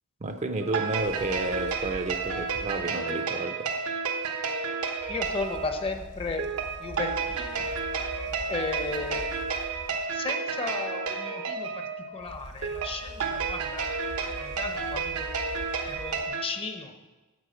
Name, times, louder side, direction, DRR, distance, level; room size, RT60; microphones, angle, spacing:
voice 1, 0.2-3.7, right 2 dB, 30° right, 8 dB, 0.5 m, -31 dB
sound 1, 0.6-16.4, right 5 dB, 85° right, 1.0 m, -31 dB
sound 2, 1.0-3.1 5.0-10.2 12.2-16.2, left 1 dB, 55° left, 1.0 m, -44 dB
voice 2, 5.1-6.4 6.8-7.6 8.5-9.3 10.1-15.3 15.9-16.9, left 3 dB, 25° left, 6 dB, 0.7 m, -35 dB
9.4 x 7.2 x 5.0 m, 1.2 s
head